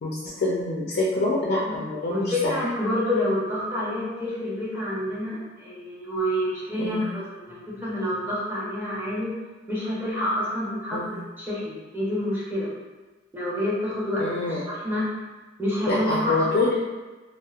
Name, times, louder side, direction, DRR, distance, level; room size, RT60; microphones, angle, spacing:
voice 1, 0.0-2.5 6.8-7.1 10.9-11.1 14.2-14.6 15.9-16.8, left 2 dB, 55° left, -5 dB, 0.4 m, -26 dB
voice 2, 2.1-9.3 9.7-11.0 11.4-12.7 13.3-15.1 15.6-16.6, left 1 dB, 10° right, -8 dB, 0.7 m, -28 dB
2.8 x 2.0 x 2.3 m, 1.2 s
head